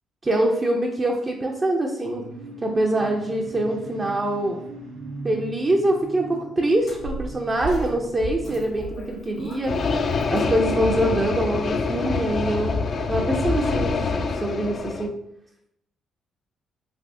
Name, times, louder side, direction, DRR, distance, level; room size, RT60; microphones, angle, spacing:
voice 1, 0.2-2.3 2.6-4.6 5.2-9.8 10.3-12.8 13.1-13.9 14.3-15.1, right 1 dB, 30° right, 0 dB, 0.4 m, -24 dB
sound 1, 2.0-8.8, right 2 dB, 85° right, 0.6 m, -40 dB
sound 2, 6.8-12.0, right 3 dB, 85° left, 1.4 m, -37 dB
sound 3, 9.7-15.1, left 4 dB, 55° left, 0.3 m, -25 dB
3.4 x 2.6 x 2.5 m, 0.78 s
supercardioid pair, 70°, 0 cm